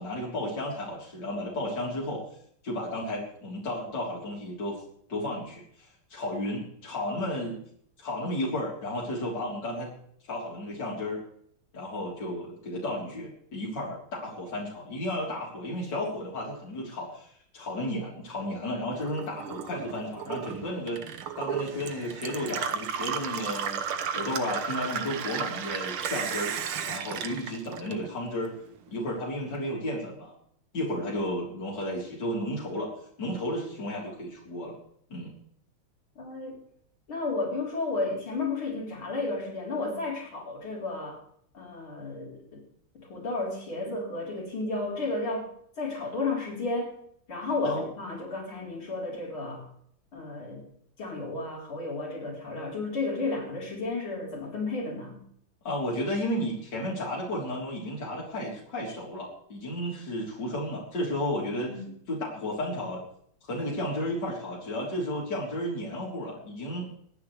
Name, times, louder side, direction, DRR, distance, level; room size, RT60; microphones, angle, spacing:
voice 1, 0.0-2.2 2.6-4.8 5.1-7.6 8.0-9.9 10.3-11.2 11.7-23.8 24.1-26.5 26.9-28.5 28.9-30.3 30.7-32.9 33.2-34.8 35.1-35.3 47.6-47.8 55.6-61.7 62.1-63.0 63.5-66.9, left 1 dB, 50° left, -5 dB, 4.3 m, -33 dB
Gurgling / Water tap faucet / Sink (filling or washing), 18.9-28.4 28.8-29.6, right 7 dB, 80° right, 2.0 m, -34 dB
voice 2, 36.2-36.6 37.1-41.2 41.5-42.6 42.9-45.5 45.8-46.9 47.3-49.6 50.1-50.6 51.0-55.2 61.7-61.8, left 3 dB, 70° left, -2 dB, 4.9 m, -32 dB
25.0 x 10.0 x 3.3 m, 0.66 s
omnidirectional pair, 2.4 m